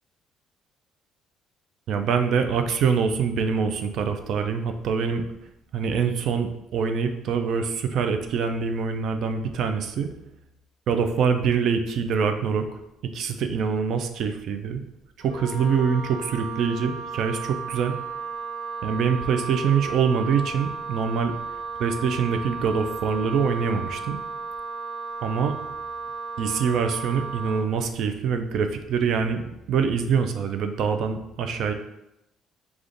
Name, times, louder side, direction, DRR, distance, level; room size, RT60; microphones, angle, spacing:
voice 1, 1.9-5.2 5.7-10.1 10.9-12.7 13.1-14.8 15.2-17.9 18.8-21.3 21.8-24.2 25.2-25.5 26.4-29.4 29.7-31.7, right 6 dB, 55° right, 7 dB, 0.4 m, -24 dB
Wind instrument woodwind instrument, 15.2-27.7, right 4 dB, 85° right, 1.4 m, -34 dB
5.1 x 2.4 x 3.8 m, 0.88 s
cardioid pair, 145°, 0 cm